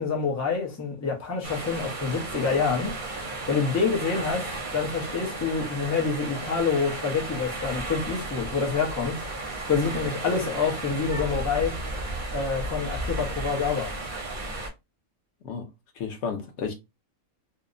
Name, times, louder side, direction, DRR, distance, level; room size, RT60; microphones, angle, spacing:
voice 1, 0.0-2.9 3.5-9.2 9.7-11.7 12.3-13.9, left 5 dB, 25° left, 0.3 m, -27 dB
sound 1, 1.4-14.7, right 2 dB, 50° right, 0.6 m, -34 dB
voice 2, 16.0-16.7, left 6 dB, 60° left, 0.8 m, -32 dB
2.7 x 2.0 x 2.4 m
omnidirectional pair, 1.5 m